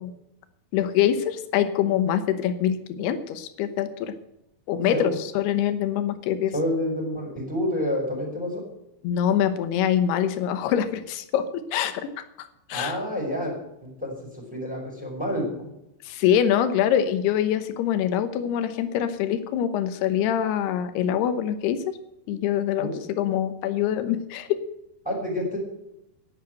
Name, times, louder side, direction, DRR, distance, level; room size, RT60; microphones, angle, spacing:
voice 1, 0.7-4.1 4.7-6.5 9.0-13.0 16.1-21.9 22.3-24.6, left 10 dB, 85° left, 10 dB, 3.1 m, -24 dB
voice 2, 6.5-8.6 12.7-13.5 13.8-15.7 22.8-23.0 25.0-25.6, left 1 dB, ahead, -2 dB, 4.9 m, -28 dB
11.5 x 9.7 x 7.9 m, 0.85 s
omnidirectional pair, 4.5 m